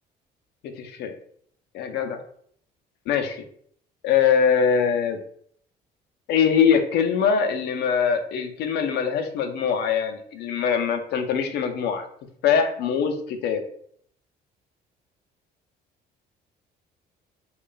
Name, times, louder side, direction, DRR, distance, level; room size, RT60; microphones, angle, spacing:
voice 1, 0.8-1.1 1.7-2.2 3.1-3.4 4.0-5.2 6.3-12.1 12.4-13.6, left 7 dB, 80° left, 6 dB, 0.5 m, -22 dB
3.1 x 2.3 x 3.8 m, 0.63 s
cardioid pair, 110°, 17 cm